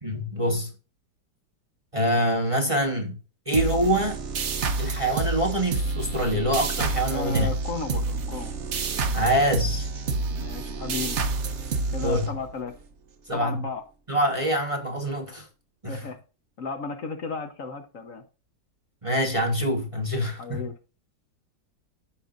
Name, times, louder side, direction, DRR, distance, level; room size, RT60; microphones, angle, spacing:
voice 1, 0.0-0.7 1.9-3.2 3.5-4.2 4.8-7.5 9.1-9.9 12.0-12.3 13.3-13.6 14.1-15.5 15.8-16.0 19.0-20.7, equal, 20° right, 1.2 m, -25 dB
sound 1, 3.5-12.8, right 3 dB, 50° right, 1.1 m, -29 dB
voice 2, 7.1-8.6 10.3-11.2 11.9-12.7 13.3-13.8 15.9-16.2 16.6-18.2 20.4-20.8, left 4 dB, 55° left, 1.3 m, -34 dB
14.5 x 5.5 x 2.5 m
omnidirectional pair, 1.9 m